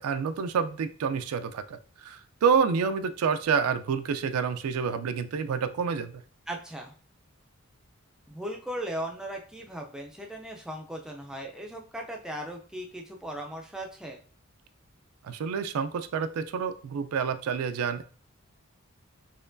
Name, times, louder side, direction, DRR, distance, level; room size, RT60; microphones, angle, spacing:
voice 1, 0.0-6.2 15.2-18.0, right 6 dB, 85° right, 10 dB, 0.4 m, -28 dB
voice 2, 6.5-6.9 8.3-14.2, right 1 dB, 5° right, 1 dB, 0.4 m, -37 dB
4.3 x 3.0 x 2.5 m, 0.41 s
head